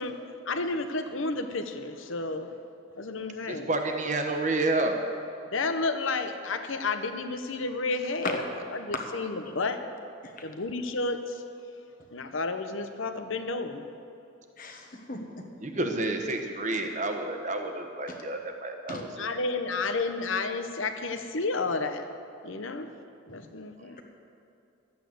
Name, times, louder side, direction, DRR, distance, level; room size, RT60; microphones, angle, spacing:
voice 1, 0.0-2.6 3.0-3.7 5.4-8.4 8.7-9.8 10.4-11.4 12.1-13.9 19.2-22.1 22.4-22.9 23.3-24.0, left 3 dB, 70° left, 8 dB, 0.9 m, -31 dB
voice 2, 3.4-5.0 15.6-19.3 23.8-23.9, right 2 dB, 35° right, 5 dB, 1.1 m, -30 dB
voice 3, 8.2-8.6 8.9-9.0 10.2-10.5 14.6-15.2 18.1-18.2 18.9-19.1, left 2 dB, 40° left, 3 dB, 1.4 m, -35 dB
12.5 x 8.9 x 7.8 m, 2.7 s
head